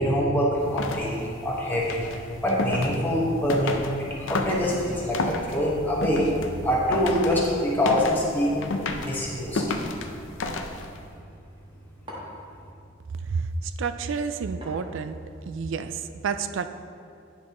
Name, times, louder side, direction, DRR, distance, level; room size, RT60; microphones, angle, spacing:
voice 1, 0.0-3.8 4.2-6.3 6.6-8.6 9.0-9.6, equal, 10° left, -5 dB, 1.3 m, -25 dB
sound 1, 0.6-11.1, left 2 dB, 85° left, 0.6 m, -33 dB
sound 2, 9.6-9.9 12.1-12.5 14.6-15.2, equal, 25° right, 1.3 m, -42 dB
voice 2, 13.2-15.2 15.5-16.7, right 5 dB, 75° right, 10 dB, 0.4 m, -30 dB
9.5 x 6.3 x 3.0 m, 2.4 s
head